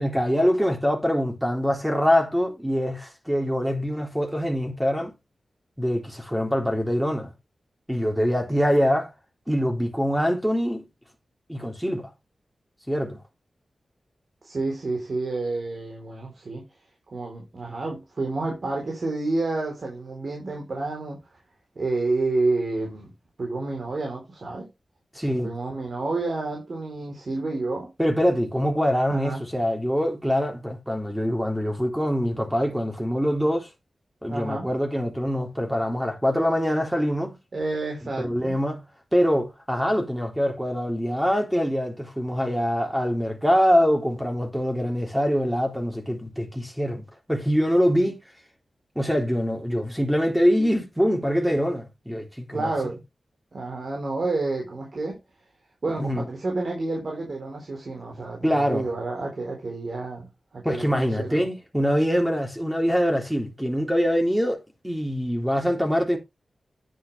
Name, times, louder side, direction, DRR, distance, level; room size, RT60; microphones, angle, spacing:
voice 1, 0.0-5.1 5.8-7.3 7.9-9.1 9.5-10.9 11.5-12.1 12.9-13.2 25.1-25.5 28.0-33.7 34.2-37.4 38.2-38.8 39.1-48.2 49.0-52.7 56.0-56.2 58.4-58.9 60.7-64.6 64.8-66.2, equal, 5° right, 3.5 m, -24 dB
voice 2, 14.4-16.7 17.1-21.2 21.8-23.1 23.4-24.7 25.2-27.9 29.1-29.4 34.3-34.7 37.5-38.5 52.5-53.0 53.5-55.2 55.8-61.5, right 3 dB, 55° right, 3.9 m, -29 dB
10.0 x 8.0 x 3.4 m
wide cardioid pair, 80°, 0 cm